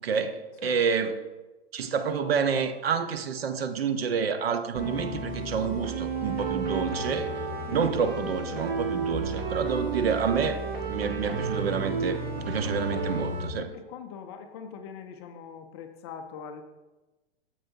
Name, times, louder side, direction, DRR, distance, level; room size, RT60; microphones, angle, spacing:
voice 1, 0.0-1.2 1.7-7.3 7.7-13.7, right 6 dB, 65° right, 0.7 m, -28 dB
sound 1, 4.7-13.5, right 3 dB, 35° right, 1.4 m, -32 dB
voice 2, 13.6-16.6, left 6 dB, 25° left, 0.4 m, -43 dB
8.5 x 7.0 x 2.6 m
figure-of-eight pair, 115°, 33 cm